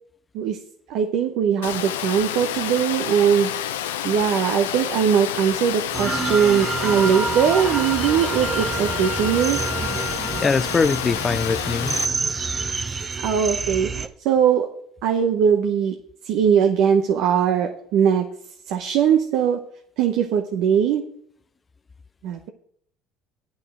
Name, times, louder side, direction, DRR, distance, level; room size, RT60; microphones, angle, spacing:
voice 1, 0.9-3.5 4.0-9.6 13.2-14.7 15.0-16.0 16.2-18.2 18.7-19.6 20.0-21.1 22.2-22.5, right 8 dB, 70° right, 0.9 m, -20 dB
Water, 1.6-12.1, left 11 dB, 90° left, 0.5 m, -29 dB
sound 1, 5.9-14.1, right 4 dB, 30° right, 0.6 m, -28 dB
voice 2, 10.4-12.0, left 4 dB, 25° left, 0.3 m, -22 dB
8.6 x 5.6 x 7.8 m
hypercardioid pair, 80°, 0 cm